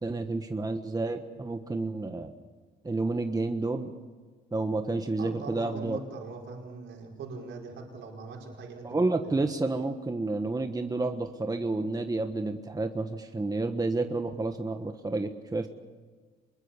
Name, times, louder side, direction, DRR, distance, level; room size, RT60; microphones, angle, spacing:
voice 1, 0.0-2.3 2.8-3.9 4.5-6.0 8.8-15.7, right 3 dB, 20° right, 6 dB, 1.4 m, -30 dB
voice 2, 5.2-8.9, right 3 dB, 75° right, 0 dB, 5.1 m, -41 dB
26.5 x 21.5 x 7.2 m, 1.5 s
cardioid pair, 90°, 20 cm